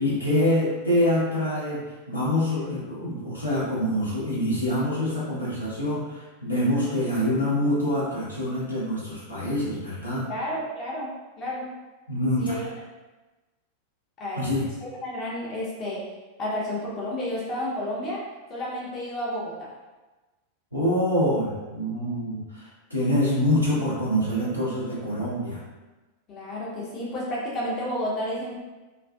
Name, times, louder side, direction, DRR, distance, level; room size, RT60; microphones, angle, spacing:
voice 1, 0.0-10.3 12.1-12.7 14.4-14.7 20.7-25.6, left 1 dB, 85° left, -8 dB, 0.8 m, -25 dB
voice 2, 10.3-11.7 12.4-12.7 14.2-14.5 14.8-16.0 16.4-18.2 18.5-19.5 26.3-28.5, equal, 30° left, -5 dB, 0.7 m, -31 dB
2.4 x 2.3 x 2.2 m, 1.2 s
figure-of-eight pair, 90°, 0 cm